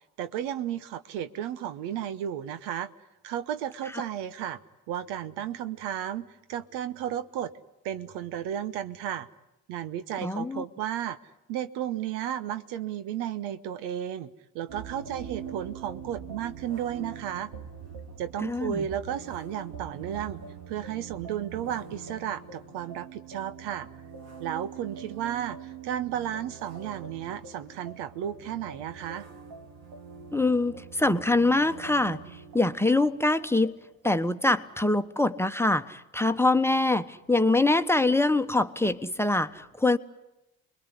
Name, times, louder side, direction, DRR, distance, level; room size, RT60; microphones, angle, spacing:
voice 1, 0.2-2.9 3.2-4.6 4.9-7.5 7.8-9.3 9.7-11.2 11.5-14.3 14.5-17.5 18.2-20.4 20.7-23.9 24.4-29.3, right 10 dB, 75° right, 12 dB, 1.0 m, -33 dB
voice 2, 10.2-10.6 18.4-18.9 30.3-32.2 32.5-33.8 34.0-40.0, left 2 dB, 5° left, 10 dB, 1.1 m, -24 dB
sound 1, 14.7-34.2, right 6 dB, 60° right, 2.4 m, -44 dB
26.0 x 21.0 x 9.8 m, 0.92 s
hypercardioid pair, 50°, 41 cm